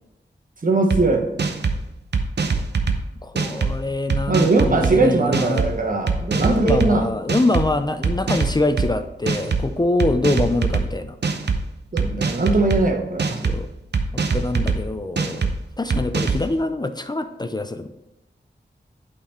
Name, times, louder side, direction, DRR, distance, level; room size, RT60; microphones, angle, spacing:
voice 1, 0.6-1.2 4.3-7.0 11.9-13.4, right 3 dB, 50° right, 3 dB, 1.2 m, -20 dB
sound 1, 0.9-1.0 1.4-1.8 2.1-3.0 3.4-3.7 4.1-4.9 5.3-5.7 6.1-6.9 7.3-7.7 8.0-8.9 9.3-9.7 10.0-10.9 11.2-11.6 12.0-12.8 13.2-13.6 13.9-14.8 15.2-15.5 15.9-16.4, right 5 dB, 65° right, 0.7 m, -22 dB
voice 2, 3.2-5.6 6.3-11.2 13.4-13.7 14.1-17.9, left 2 dB, 20° left, 9 dB, 0.5 m, -24 dB
8.6 x 4.2 x 4.3 m, 0.94 s
cardioid pair, 55°, 19 cm